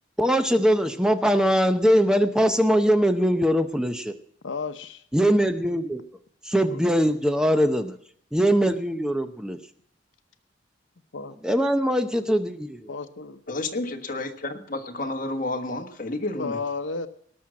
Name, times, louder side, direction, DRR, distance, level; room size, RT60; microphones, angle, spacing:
voice 1, 0.2-4.1 5.1-6.0 6.4-8.0 8.3-9.6 11.4-12.9, equal, 5° right, 8 dB, 0.7 m, -21 dB
voice 2, 4.4-5.0 6.7-6.8 11.1-11.3 12.9-13.4 16.4-17.1, left 4 dB, 80° left, 10 dB, 0.9 m, -32 dB
voice 3, 13.5-16.6, left 2 dB, 45° left, 5 dB, 1.4 m, -30 dB
19.0 x 6.4 x 7.5 m, 0.62 s
head